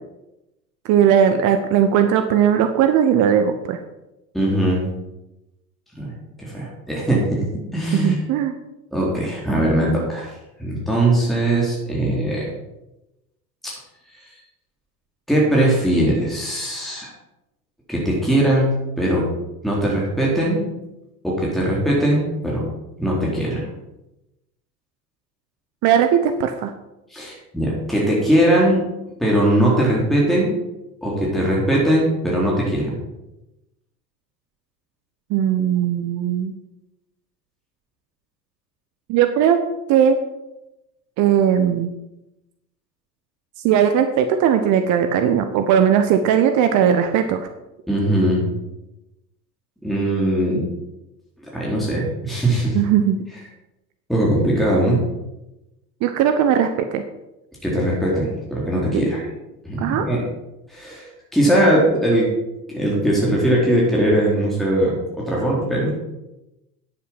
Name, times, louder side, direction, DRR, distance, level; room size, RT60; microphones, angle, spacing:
voice 1, 0.8-3.8 7.9-8.5 25.8-26.7 35.3-36.5 39.1-39.6 39.9-40.2 41.2-41.9 43.6-47.5 52.7-53.2 56.0-57.0 58.9-59.1 59.8-60.1, right 8 dB, 35° right, 8 dB, 1.0 m, -18 dB
voice 2, 4.3-4.9 6.0-6.1 6.4-7.5 7.7-8.1 8.9-10.3 10.6-12.4 13.6-13.7 15.3-17.1 17.9-18.7 19.0-19.3 19.6-20.6 21.2-22.7 23.0-23.7 27.1-28.8 29.2-30.5 31.0-33.0 47.9-48.4 49.8-50.6 51.5-52.8 54.1-55.0 57.6-59.3 59.6-60.2 60.7-62.3 62.7-65.9, right 1 dB, ahead, -4 dB, 3.8 m, -20 dB
9.7 x 7.8 x 6.0 m, 0.94 s
figure-of-eight pair, 80°, 48 cm